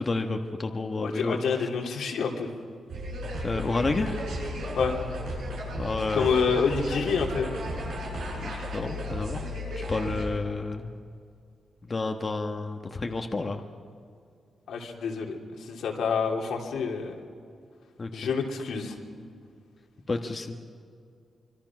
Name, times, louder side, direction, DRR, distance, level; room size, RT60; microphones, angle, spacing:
voice 1, 0.0-1.7 3.4-4.2 5.8-6.3 8.4-9.5 9.8-10.9 11.9-13.6 18.0-18.3 20.1-20.6, left 3 dB, 30° left, 4 dB, 1.2 m, -30 dB
voice 2, 1.0-2.5 4.7-5.0 6.1-7.5 14.7-17.1 18.1-19.0, left 5 dB, 90° left, 0 dB, 3.0 m, -28 dB
sound 1, 2.9-10.2, equal, 90° right, 7.4 m, -34 dB
25.0 x 24.0 x 6.1 m, 2.3 s
wide cardioid pair, 140°, 0 cm